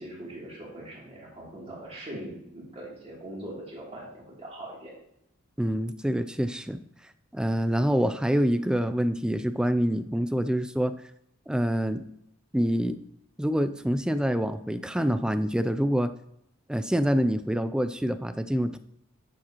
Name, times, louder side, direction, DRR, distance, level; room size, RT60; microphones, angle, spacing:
voice 1, 0.0-4.9, right 1 dB, 25° right, -5 dB, 3.0 m, -41 dB
voice 2, 5.6-6.8 7.3-10.9 11.5-12.0 12.5-13.0 13.4-16.1 16.7-18.8, equal, 5° right, 11 dB, 0.3 m, -26 dB
10.5 x 7.3 x 3.0 m, 0.76 s
head